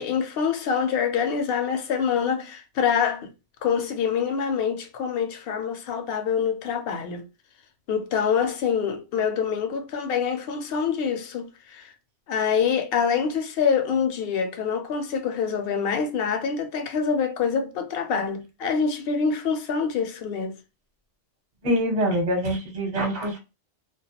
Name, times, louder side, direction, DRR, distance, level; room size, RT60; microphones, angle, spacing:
voice 1, 0.0-3.3 3.6-7.3 7.9-11.9 12.3-20.6, left 6 dB, 65° left, 0.7 m, -25 dB
voice 2, 21.6-23.4, equal, 40° right, 0.8 m, -24 dB
2.3 x 2.1 x 2.8 m
omnidirectional pair, 1.2 m